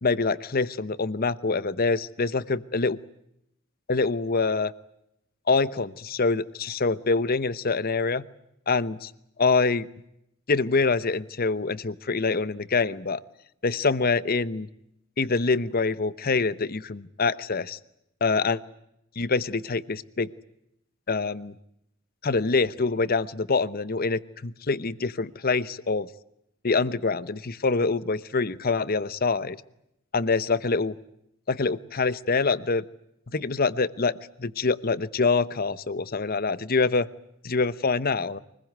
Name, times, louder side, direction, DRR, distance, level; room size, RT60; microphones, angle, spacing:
voice 1, 0.0-3.0 3.9-4.7 5.5-8.2 8.7-9.1 9.4-9.9 10.5-13.2 13.6-14.7 15.2-17.8 18.2-18.6 19.2-20.3 21.1-21.5 22.2-26.1 26.6-29.6 30.1-30.9 31.5-32.8 33.3-34.1 34.4-37.1 37.4-38.4, left 4 dB, 45° left, 17 dB, 0.9 m, -25 dB
24.5 x 21.0 x 9.4 m, 0.80 s
head